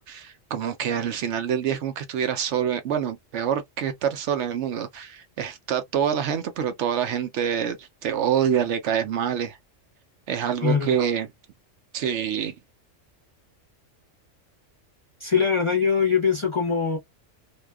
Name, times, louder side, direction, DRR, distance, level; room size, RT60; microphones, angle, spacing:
voice 1, 0.0-9.6 10.3-11.3 11.9-12.5, right 8 dB, 70° right, 0.9 m, -26 dB
voice 2, 15.2-17.0, left 6 dB, 30° left, 0.6 m, -22 dB
2.6 x 2.3 x 2.2 m
omnidirectional pair, 1.3 m